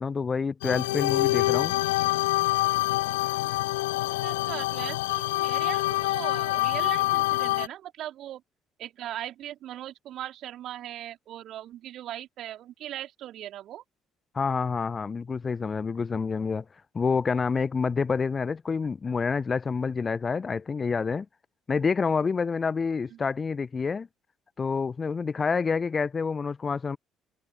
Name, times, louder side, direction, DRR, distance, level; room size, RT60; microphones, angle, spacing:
voice 1, 0.0-1.7 14.3-16.6 16.9-21.3 21.7-24.1 24.6-27.0, left 5 dB, 30° left, 0.9 m, -28 dB
sound 1, 0.6-7.7, left 19 dB, 70° left, 0.4 m, -26 dB
voice 2, 4.2-8.4 8.8-13.8 23.1-23.2, right 12 dB, 55° right, 4.0 m, -39 dB
figure-of-eight pair, 50°, 0 cm